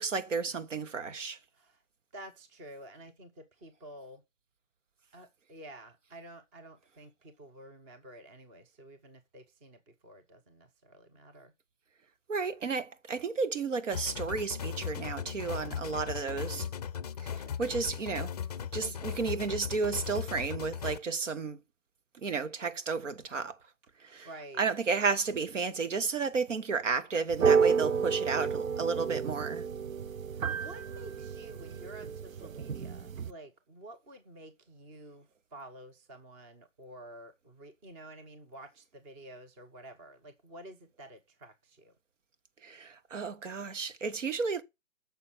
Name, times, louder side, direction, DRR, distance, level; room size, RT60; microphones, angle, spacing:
voice 1, 0.0-1.4 12.3-16.7 17.2-18.3 18.7-21.6 22.2-23.6 24.0-24.3 24.6-29.6 42.6-44.6, right 5 dB, 65° right, 1.8 m, -32 dB
voice 2, 2.1-4.2 5.1-11.5 15.6-15.8 16.1-17.4 17.7-18.1 18.8-19.2 24.2-24.7 28.2-29.0 30.3-41.9, right 1 dB, 10° right, 0.8 m, -51 dB
sound 1, 13.9-21.0, left 8 dB, 30° left, 0.6 m, -37 dB
sound 2, 27.3-33.3, right 6 dB, 85° right, 0.9 m, -30 dB
9.2 x 6.6 x 7.3 m
hypercardioid pair, 160°, 39 cm